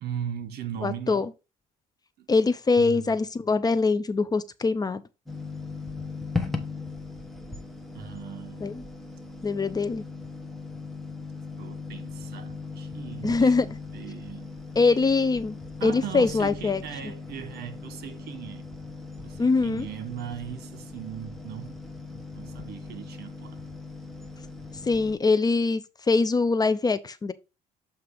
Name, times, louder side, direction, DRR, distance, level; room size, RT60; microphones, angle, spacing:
voice 1, 0.0-1.3 2.2-2.3 2.8-3.1 7.9-8.9 11.6-14.5 15.8-18.7 19.2-21.8 22.3-23.6, right 9 dB, 70° right, 1.4 m, -38 dB
voice 2, 0.8-1.3 2.3-5.0 8.6-8.8 9.4-10.0 13.2-13.7 14.8-15.6 15.8-16.8 19.4-19.8 24.9-27.3, left 4 dB, 25° left, 0.5 m, -23 dB
sound 1, 5.3-25.2, left 4 dB, ahead, 1.2 m, -38 dB
7.6 x 2.9 x 5.0 m
cardioid pair, 110°, 17 cm